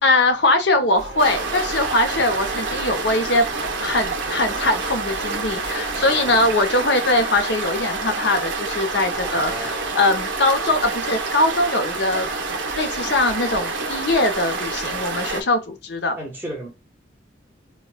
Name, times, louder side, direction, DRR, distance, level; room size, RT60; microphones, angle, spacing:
voice 1, 0.0-3.5 3.8-12.3 12.7-16.2, left 2 dB, 65° left, 0.8 m, -21 dB
sound 1, 0.9-6.5, right 3 dB, 70° right, 1.2 m, -37 dB
sound 2, 1.2-15.4, right 3 dB, 85° right, 0.8 m, -28 dB
voice 2, 5.8-6.4 9.1-9.9 16.1-16.7, equal, 10° right, 1.0 m, -35 dB
4.4 x 2.2 x 2.2 m
head